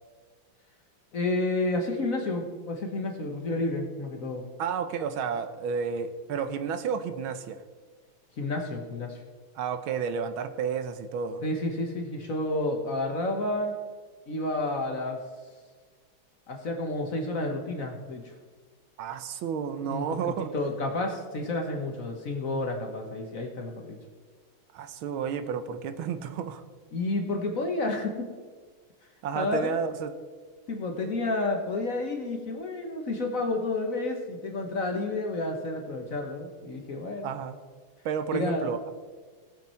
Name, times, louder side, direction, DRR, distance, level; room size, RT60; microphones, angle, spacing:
voice 1, 1.1-4.4 8.4-9.2 11.4-13.7 14.3-15.2 16.5-18.3 19.8-24.0 26.9-28.3 29.3-29.7 30.7-37.3 38.3-38.7, left 2 dB, 45° left, 3 dB, 1.3 m, -30 dB
voice 2, 4.6-7.6 9.5-11.4 19.0-20.5 24.7-26.6 29.2-30.1 37.2-37.6 38.0-38.9, right 6 dB, 75° right, 9 dB, 1.5 m, -31 dB
18.5 x 7.3 x 4.4 m, 1.5 s
omnidirectional pair, 2.3 m